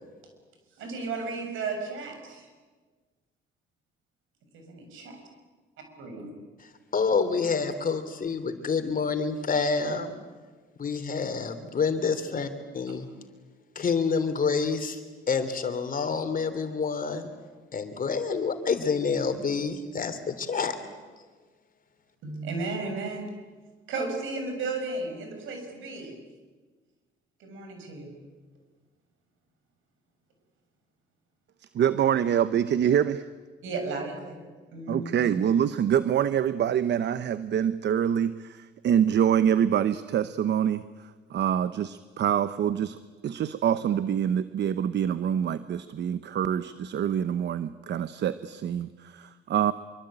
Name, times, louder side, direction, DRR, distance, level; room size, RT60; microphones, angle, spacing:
voice 1, 0.8-2.5 4.5-5.2 6.0-6.3 22.2-23.3 23.9-26.1 27.4-28.1 33.6-35.3, right 3 dB, 80° right, 4 dB, 7.1 m, -34 dB
voice 2, 6.6-10.1 10.8-12.5 12.7-13.1 13.7-15.0 15.3-17.3 17.7-20.7, left 5 dB, 45° left, 9 dB, 3.3 m, -28 dB
voice 3, 31.7-33.3 34.9-49.7, right 9 dB, 60° right, 13 dB, 0.9 m, -26 dB
25.0 x 24.0 x 9.0 m, 1.4 s
cardioid pair, 90°, 20 cm